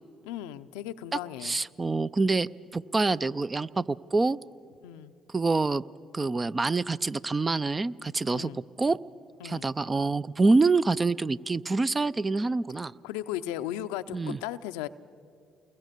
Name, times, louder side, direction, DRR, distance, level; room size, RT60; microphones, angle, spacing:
voice 1, 0.2-1.6 4.8-5.1 8.3-8.6 9.4-9.7 13.0-14.9, left 12 dB, 85° left, 11 dB, 0.5 m, -36 dB
voice 2, 1.4-4.4 5.3-5.8 6.1-8.5 8.8-9.0 9.4-12.9 14.1-14.4, right 3 dB, 30° right, 16 dB, 0.5 m, -26 dB
28.5 x 22.0 x 6.8 m, 2.4 s
supercardioid pair, 60°, 0 cm